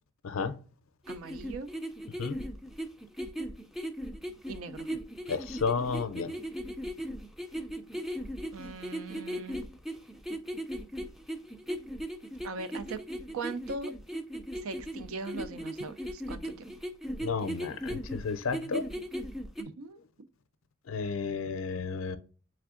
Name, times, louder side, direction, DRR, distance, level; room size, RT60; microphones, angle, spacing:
voice 1, 0.2-0.6 2.2-2.4 5.3-6.3 17.2-18.9 20.9-22.2, left 5 dB, 70° left, 0.5 m, -32 dB
sound 1, 1.1-19.6, equal, ahead, 0.3 m, -37 dB
voice 2, 1.1-1.7 4.5-5.0 8.5-9.7 12.4-13.0 13.3-13.9 14.5-16.7 19.6-20.0, right 3 dB, 85° right, 0.5 m, -40 dB
3.4 x 3.3 x 3.6 m
head